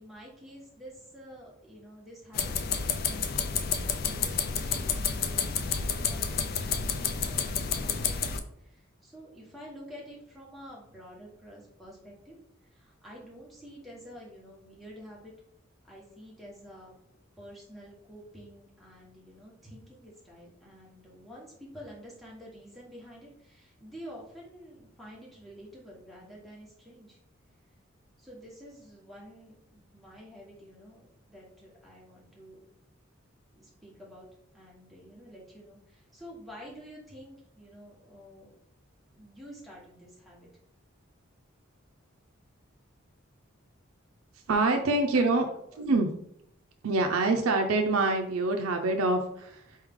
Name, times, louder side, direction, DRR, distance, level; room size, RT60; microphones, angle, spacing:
voice 1, 0.0-12.3 12.6-15.3 15.9-17.0 17.4-27.2 28.2-32.6 33.5-34.3 34.5-38.5 39.1-40.5 45.1-45.8, equal, ahead, -5 dB, 1.2 m, -49 dB
sound 1, 2.3-8.4, left 6 dB, 45° left, 0.3 m, -30 dB
voice 2, 44.5-45.5 45.8-46.1 46.8-49.8, right 3 dB, 90° right, 4 dB, 0.5 m, -25 dB
4.4 x 3.2 x 3.5 m, 0.73 s
head